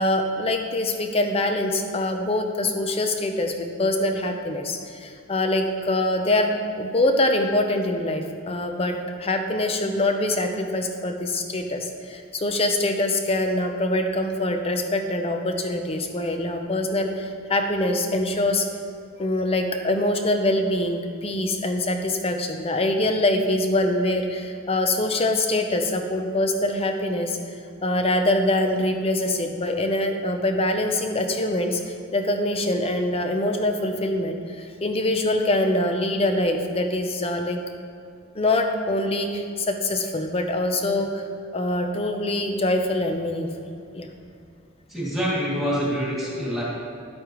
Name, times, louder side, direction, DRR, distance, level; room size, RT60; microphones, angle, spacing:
voice 1, 0.0-18.7 19.2-27.4 27.8-37.6 38.4-41.2 41.5-43.5 43.9-44.1, left 1 dB, 25° left, 5 dB, 0.6 m, -24 dB
voice 2, 44.9-46.6, equal, ahead, -7 dB, 2.3 m, -26 dB
10.5 x 8.6 x 3.1 m, 2.4 s
head